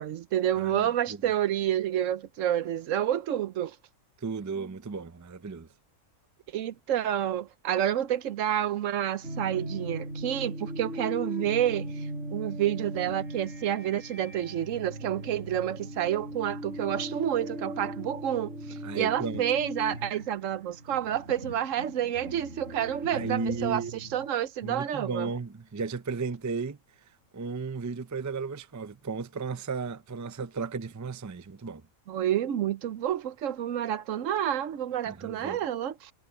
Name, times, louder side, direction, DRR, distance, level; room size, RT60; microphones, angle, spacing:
voice 1, 0.0-3.8 6.5-25.3 32.1-36.1, right 11 dB, 80° right, 1.1 m, -29 dB
voice 2, 0.6-1.2 4.2-5.7 18.8-19.4 23.1-24.0 24.6-26.8 27.3-31.8 35.1-35.6, right 4 dB, 30° right, 0.3 m, -34 dB
sound 1, 9.2-24.4, right 1 dB, 60° right, 5.2 m, -39 dB
omnidirectional pair, 1.3 m